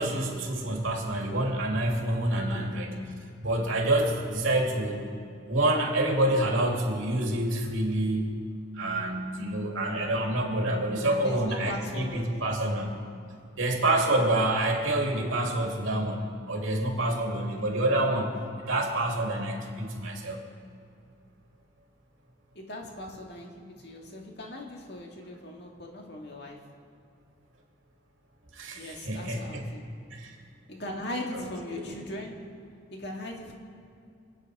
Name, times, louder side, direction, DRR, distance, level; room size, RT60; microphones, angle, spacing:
voice 1, 0.0-3.1 3.4-5.1 5.5-8.3 8.7-13.0 13.5-18.3 18.6-20.4 28.5-29.6 30.1-30.4 31.3-31.9, right 1 dB, 85° right, 0 dB, 2.7 m, -27 dB
voice 2, 2.3-2.7 11.1-12.5 17.3-17.7 22.6-26.7 28.7-29.9 30.7-32.4 32.9-33.5, left 1 dB, 55° left, 1 dB, 2.1 m, -39 dB
27.0 x 9.2 x 4.9 m, 2.4 s
head